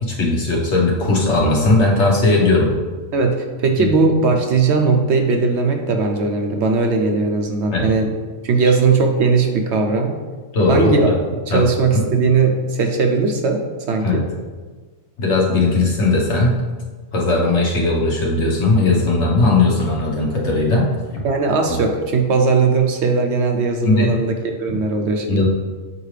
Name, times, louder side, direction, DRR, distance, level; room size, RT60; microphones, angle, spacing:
voice 1, 0.0-2.7 3.8-3.9 7.7-7.8 8.6-8.7 10.5-10.9 11.5-11.6 11.9-12.1 14.0-14.2 15.2-16.6 17.1-20.9 21.7-21.8 23.8-24.1 25.3-25.5, left 2 dB, 60° left, -3 dB, 1.5 m, -17 dB
voice 2, 3.1-8.1 8.4-10.2 10.7-11.1 11.5-14.2 21.2-25.5, right 4 dB, 65° right, 4 dB, 0.9 m, -18 dB
7.3 x 4.7 x 3.3 m, 1.4 s
omnidirectional pair, 1.4 m